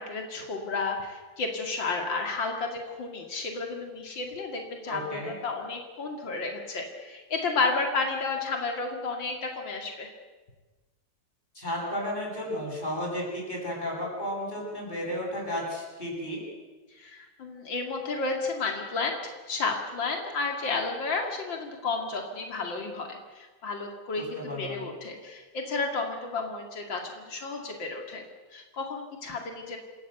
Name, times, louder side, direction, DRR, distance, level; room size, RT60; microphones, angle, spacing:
voice 1, 0.0-10.1 17.0-19.2 19.5-28.2 28.5-29.8, left 3 dB, 90° left, 2 dB, 3.0 m, -32 dB
voice 2, 4.9-5.3 11.5-16.4 24.1-24.9, equal, 25° left, -3 dB, 8.1 m, -33 dB
27.5 x 16.5 x 8.2 m, 1.3 s
omnidirectional pair, 2.0 m